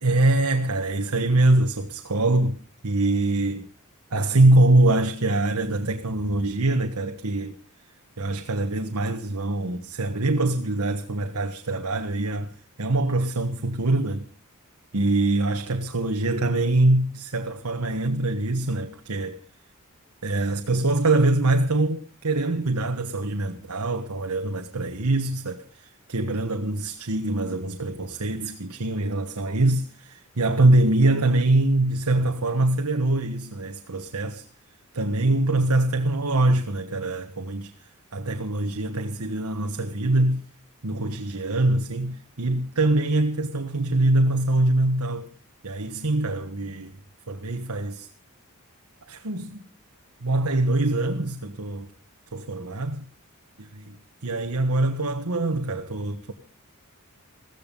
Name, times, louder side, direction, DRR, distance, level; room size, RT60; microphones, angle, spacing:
voice 1, 0.0-2.6 2.8-3.7 4.1-7.6 8.2-14.3 14.9-19.4 20.2-34.4 34.9-37.7 38.1-40.4 40.8-45.3 45.6-46.9 47.3-48.1 49.1-49.6 50.2-51.9 52.3-53.0 54.2-56.3, right 2 dB, 80° right, 1.4 m, -23 dB
16.0 x 14.5 x 5.4 m
head